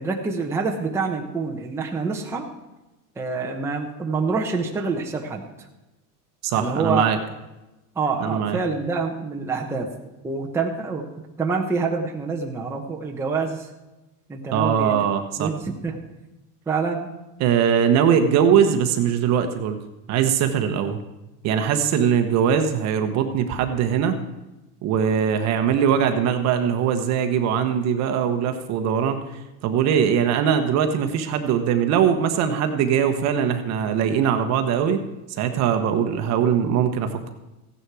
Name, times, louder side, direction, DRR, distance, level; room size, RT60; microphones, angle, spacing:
voice 1, 0.0-2.5 3.2-5.7 6.5-7.1 7.9-9.9 10.2-11.1 11.4-13.7 14.3-15.0 15.4-16.0 16.7-17.1, right 4 dB, 5° right, 0 dB, 0.9 m, -26 dB
voice 2, 6.4-7.2 8.2-8.6 14.5-15.5 17.4-19.8 20.1-21.0 21.4-24.2 24.8-35.0 35.3-37.3, right 8 dB, 35° right, 7 dB, 1.1 m, -21 dB
15.5 x 9.8 x 4.8 m, 1.0 s
supercardioid pair, 145°, 46 cm